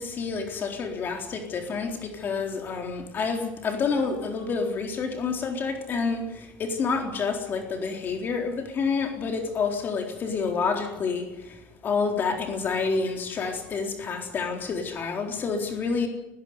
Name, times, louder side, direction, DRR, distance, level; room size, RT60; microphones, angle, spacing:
voice 1, 0.0-16.1, left 5 dB, 40° left, 3 dB, 4.0 m, -28 dB
19.5 x 17.0 x 9.7 m, 0.93 s
cardioid pair, 120°, 6 cm